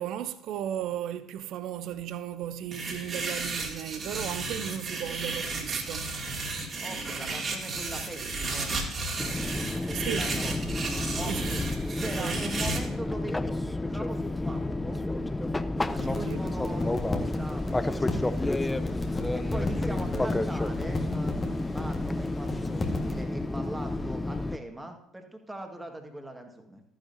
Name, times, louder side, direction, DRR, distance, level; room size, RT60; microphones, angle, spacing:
voice 1, 0.0-6.1 9.9-10.3 11.3-11.6 12.0-12.5 16.1-16.4, right 10 dB, 55° right, 0.6 m, -35 dB
sound 1, 2.7-12.8, right 3 dB, 35° right, 2.3 m, -33 dB
voice 2, 6.8-8.7 9.5-10.8 11.2-11.6 12.0-15.0 15.9-18.6 19.3-26.8, right 1 dB, 10° right, 1.8 m, -41 dB
Fixed-wing aircraft airplane, 9.2-24.6, left 2 dB, 15° left, 0.5 m, -30 dB
sound 2, 15.8-23.2, left 2 dB, 30° left, 1.7 m, -36 dB
14.0 x 10.0 x 2.8 m
figure-of-eight pair, 55°, 0 cm